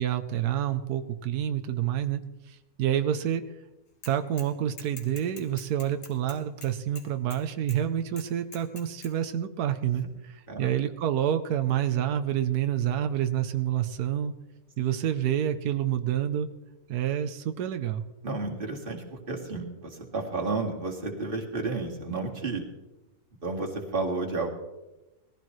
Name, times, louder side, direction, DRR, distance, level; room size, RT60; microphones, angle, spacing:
voice 1, 0.0-2.2 2.5-3.4 4.1-14.3 14.8-16.5 16.9-18.0, right 10 dB, 90° right, 8 dB, 1.3 m, -28 dB
Bicycle / Mechanisms, 4.0-4.5 4.8-7.4 7.7-7.8 8.2-9.1, left 3 dB, 50° left, 2.0 m, -45 dB
voice 2, 18.2-22.6 23.4-24.5, right 3 dB, 35° right, 0 dB, 2.2 m, -32 dB
20.0 x 15.0 x 3.2 m, 1.0 s
omnidirectional pair, 1.6 m